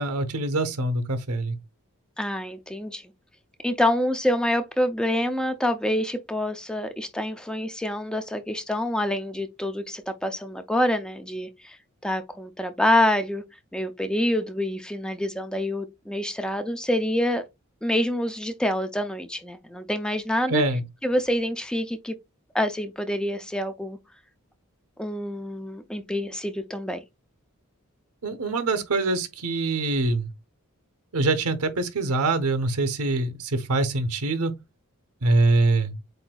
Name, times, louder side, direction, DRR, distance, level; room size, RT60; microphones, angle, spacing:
voice 1, 0.0-1.6 20.5-20.8 28.2-30.3 31.1-34.5 35.2-36.0, right 2 dB, 90° right, 0.9 m, -24 dB
voice 2, 2.2-3.0 3.6-11.8 12.0-13.4 13.7-17.4 17.8-20.6 21.0-22.1 22.5-24.0 25.0-27.0, left 1 dB, 5° left, 0.4 m, -26 dB
7.9 x 2.6 x 2.3 m
head